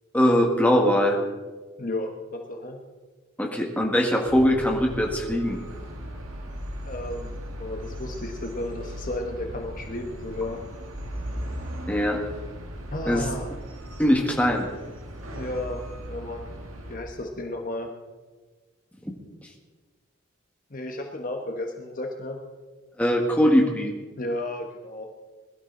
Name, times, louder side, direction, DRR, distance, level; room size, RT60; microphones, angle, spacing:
voice 1, 0.1-1.2 3.4-5.6 11.9-12.2 13.1-13.2 14.0-14.7 23.0-23.9, equal, 5° left, 1 dB, 1.7 m, -21 dB
voice 2, 1.8-2.8 6.9-7.3 7.6-10.6 12.9-13.5 15.3-15.8 16.1-16.5 16.9-17.9 20.7-22.4 24.2-25.1, left 1 dB, 40° left, 3 dB, 1.2 m, -33 dB
sound 1, 4.3-17.0, equal, 90° right, 1.9 m, -37 dB
21.0 x 12.5 x 3.9 m, 1.3 s
head